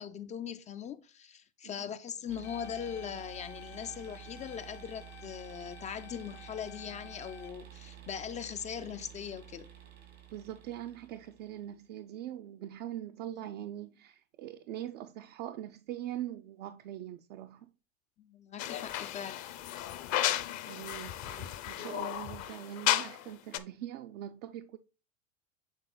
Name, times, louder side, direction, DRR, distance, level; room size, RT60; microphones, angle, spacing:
voice 1, 0.0-9.7 18.2-19.4, left 8 dB, 20° left, 0.3 m, -40 dB
sound 1, 2.3-11.7, right 11 dB, 90° right, 2.9 m, -51 dB
sound 2, 2.4-7.5, left 9 dB, 70° left, 1.0 m, -52 dB
voice 2, 10.3-17.7 20.7-24.8, right 12 dB, 70° right, 0.6 m, -42 dB
sound 3, 18.6-23.3 23.5-23.6, left 13 dB, 45° left, 0.7 m, -34 dB
7.9 x 3.4 x 3.9 m
hypercardioid pair, 100°, 38 cm